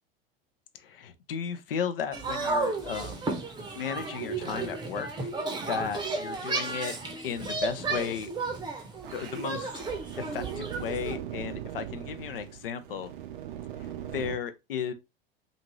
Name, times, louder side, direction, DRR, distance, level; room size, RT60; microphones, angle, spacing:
voice 1, 0.7-3.3 3.7-5.3 5.7-6.9 7.2-8.3 9.1-9.8 10.2-13.1 14.1-14.9, left 7 dB, 70° left, 0.6 m, -34 dB
sound 1, 2.1-11.2, right 3 dB, 15° right, 0.7 m, -33 dB
sound 2, 9.0-14.4, right 11 dB, 60° right, 0.5 m, -40 dB
2.6 x 2.5 x 3.0 m
figure-of-eight pair, 80°, 29 cm